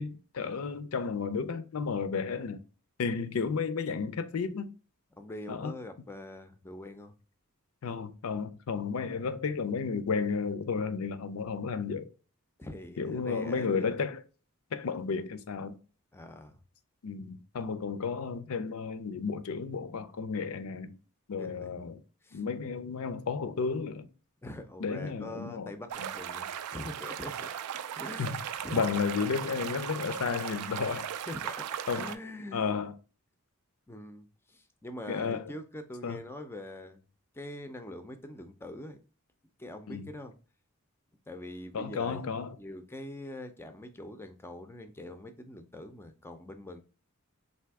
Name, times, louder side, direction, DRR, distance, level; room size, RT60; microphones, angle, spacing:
voice 1, 0.0-2.6 3.0-4.7 5.5-5.7 7.8-12.1 13.0-14.2 14.7-15.8 17.0-20.9 21.3-22.0 22.3-24.1 24.8-25.7 28.2-28.4 28.7-31.1 31.9-32.1 32.5-32.9 35.1-35.4 36.0-36.2 39.9-40.1 41.7-42.6, left 5 dB, 65° left, 0.5 m, -32 dB
voice 2, 5.2-7.2 12.6-13.9 16.1-16.6 21.3-21.7 22.2-22.4 24.4-27.5 27.9-28.9 31.3-32.7 33.9-37.0 37.3-39.0 39.6-40.3 41.3-46.8, left 1 dB, 10° left, 0.4 m, -43 dB
sound 1, 25.9-32.1, right 9 dB, 85° right, 0.4 m, -37 dB
3.4 x 2.7 x 4.6 m
head